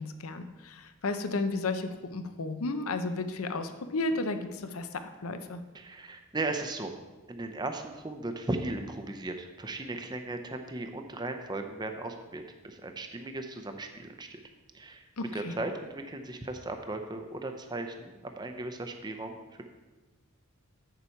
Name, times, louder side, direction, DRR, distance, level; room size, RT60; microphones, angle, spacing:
voice 1, 0.0-5.6 15.2-15.6, left 3 dB, 75° left, 8 dB, 0.7 m, -33 dB
voice 2, 5.7-6.9 7.3-14.4 14.7-15.1 15.3-19.6, right 2 dB, 20° right, 5 dB, 0.6 m, -37 dB
8.4 x 6.9 x 4.5 m, 1.2 s
head